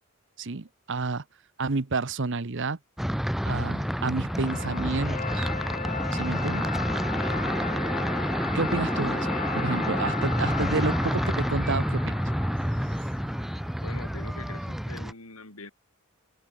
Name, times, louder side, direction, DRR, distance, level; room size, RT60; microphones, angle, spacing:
voice 1, 0.4-1.2 1.6-2.8 3.4-5.5 6.1-6.7 8.5-9.3 9.5-12.2, right 3 dB, 55° right, 0.9 m, -30 dB
sound 1, 3.0-15.1, equal, ahead, 0.4 m, -28 dB
sound 2, 3.8-13.9, left 5 dB, 35° left, 2.0 m, -36 dB
voice 2, 7.6-7.9 13.8-15.7, left 3 dB, 80° left, 4.7 m, -44 dB
open air
head